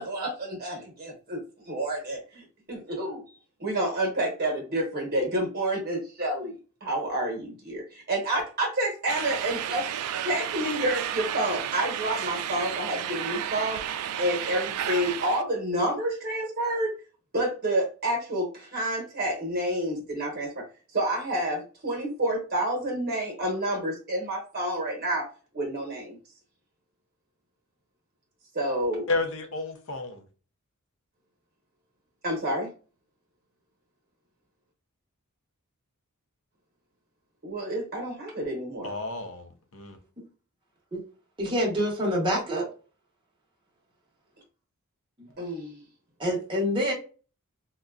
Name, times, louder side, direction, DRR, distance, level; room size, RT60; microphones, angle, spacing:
voice 1, 0.0-1.4 1.6-3.2 3.6-6.5 6.8-9.9 10.2-13.8 14.2-16.9 17.3-20.6 20.9-25.3 25.5-26.2 28.5-29.1 32.2-32.7 37.4-38.9 45.4-45.8, right 1 dB, 45° right, 0 dB, 1.0 m, -29 dB
sound 1, 9.1-15.4, right 10 dB, 85° right, 0.3 m, -32 dB
voice 2, 29.1-30.2 38.8-40.0, left 3 dB, 65° left, 6 dB, 0.6 m, -31 dB
voice 3, 41.4-42.7 45.2-45.3 46.2-46.9, equal, 20° right, -3 dB, 0.9 m, -26 dB
3.7 x 2.2 x 2.3 m, 0.36 s
head